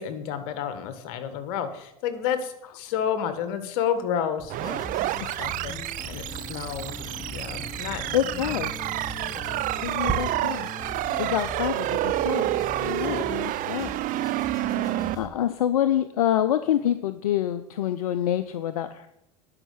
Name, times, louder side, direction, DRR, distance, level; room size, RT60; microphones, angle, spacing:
voice 1, 0.0-4.8 5.4-8.5 9.3-9.6 13.0-13.2 14.7-15.1, left 8 dB, 70° left, 10 dB, 1.6 m, -31 dB
Bird vocalization bird call bird song, 4.4-10.1, right 5 dB, 15° right, 1.7 m, -40 dB
sound 1, 4.5-15.3, left 2 dB, 20° left, 2.7 m, -41 dB
sound 2, 4.5-15.1, right 16 dB, 50° right, 0.4 m, -29 dB
voice 2, 8.1-8.7 9.8-10.7 11.2-12.5 12.8-13.9 15.1-19.1, left 11 dB, 90° left, 11 dB, 0.6 m, -26 dB
10.5 x 5.7 x 8.6 m, 0.82 s
hypercardioid pair, 85°, 18 cm